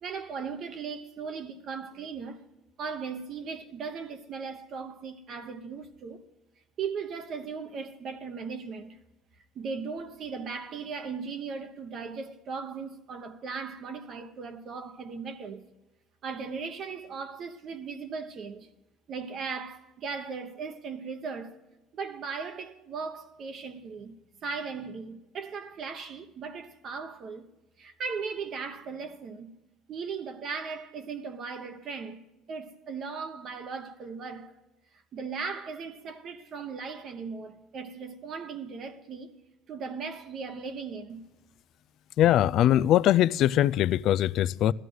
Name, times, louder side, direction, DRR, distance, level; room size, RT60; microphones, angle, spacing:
voice 1, 0.0-2.4 2.8-6.2 6.8-9.0 9.5-15.6 16.2-18.7 19.1-21.6 21.9-27.5 27.8-29.6 29.9-34.5 35.1-39.3 39.7-41.2, right 5 dB, 40° right, 1.0 m, -37 dB
voice 2, 42.2-44.7, left 12 dB, 50° left, 0.4 m, -22 dB
16.0 x 13.0 x 6.3 m
cardioid pair, 145°, 0 cm